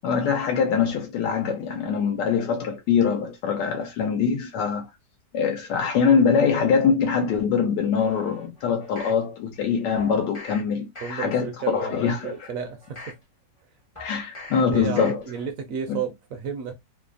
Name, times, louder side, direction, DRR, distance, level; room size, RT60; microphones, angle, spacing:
voice 1, 0.0-4.9 5.3-12.3 14.0-15.2 15.9-16.0, left 6 dB, 85° left, 1.2 m, -23 dB
sound 1, 8.0-9.2 10.0-10.6 10.9-11.5 11.9-13.2 14.0-14.6 15.0-15.5 15.9-16.0, left 2 dB, 30° left, 0.5 m, -43 dB
voice 2, 11.0-13.2 14.7-16.7, right 7 dB, 65° right, 0.9 m, -32 dB
3.1 x 2.0 x 2.4 m
omnidirectional pair, 1.9 m